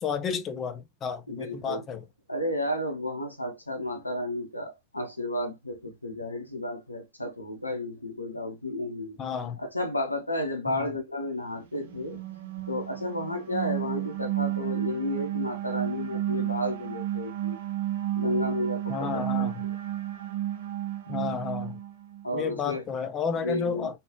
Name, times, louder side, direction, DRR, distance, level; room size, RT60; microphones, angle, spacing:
voice 1, 0.0-2.0 9.2-9.6 10.7-10.9 18.9-19.6 21.1-21.8 22.3-24.0, left 6 dB, 30° left, 0.6 m, -32 dB
voice 2, 1.3-1.8 2.3-9.2 9.6-12.2 12.7-17.6 18.1-19.5 22.2-22.8 23.3-24.0, left 1 dB, 85° left, 0.8 m, -32 dB
sound 1, 11.7-22.2, right 13 dB, 60° right, 0.7 m, -32 dB
3.4 x 3.1 x 2.9 m
figure-of-eight pair, 90°, 0 cm